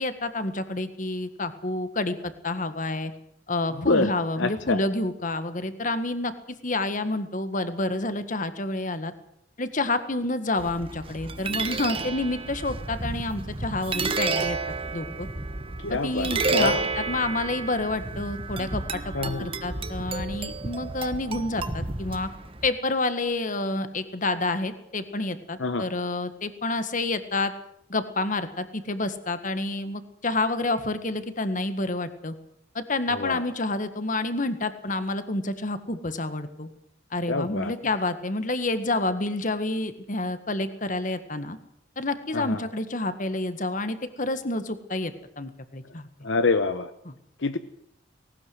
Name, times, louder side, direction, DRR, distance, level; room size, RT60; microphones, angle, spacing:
voice 1, 0.0-3.1 3.5-6.3 6.6-9.1 9.6-14.6 14.9-15.3 15.9-19.1 19.4-22.3 22.6-27.5 27.9-32.4 32.8-36.7 37.1-41.6 42.0-46.1 47.1-47.2, left 2 dB, 40° left, 11 dB, 1.7 m, -29 dB
voice 2, 4.4-4.8 15.8-16.8 19.1-19.5 25.6-25.8 33.1-33.4 37.3-37.7 42.3-42.7 46.2-46.9 47.4-47.6, left 3 dB, 70° left, 10 dB, 1.0 m, -26 dB
sound 1, 10.6-22.7, right 3 dB, 30° right, 1.3 m, -31 dB
19.0 x 18.5 x 7.9 m, 0.73 s
head